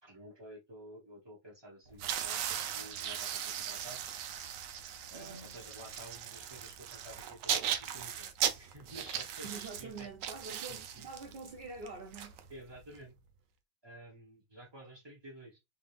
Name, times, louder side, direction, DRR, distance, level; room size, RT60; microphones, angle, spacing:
voice 1, 0.0-4.1 5.1-10.1 10.5-11.1 12.5-13.2 13.8-15.6, right 1 dB, 15° right, 1.5 m, -52 dB
sound 1, 1.9-12.9, right 9 dB, 90° right, 1.3 m, -38 dB
voice 2, 5.1-5.6 9.4-12.5, right 4 dB, 55° right, 0.6 m, -46 dB
3.5 x 3.3 x 3.4 m
omnidirectional pair, 1.8 m